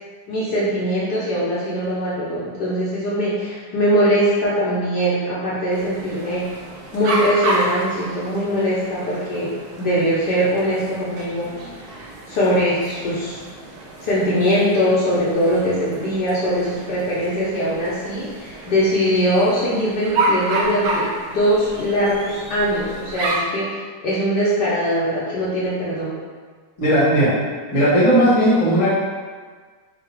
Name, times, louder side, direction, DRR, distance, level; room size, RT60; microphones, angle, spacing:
voice 1, 0.3-6.5 6.9-13.4 14.0-26.2, equal, 65° left, -8 dB, 1.1 m, -21 dB
sound 1, 5.7-23.4, right 2 dB, 75° right, 0.9 m, -30 dB
voice 2, 26.8-27.3 27.7-28.9, equal, 20° left, -8 dB, 0.8 m, -16 dB
3.7 x 2.3 x 4.4 m, 1.5 s
omnidirectional pair, 2.2 m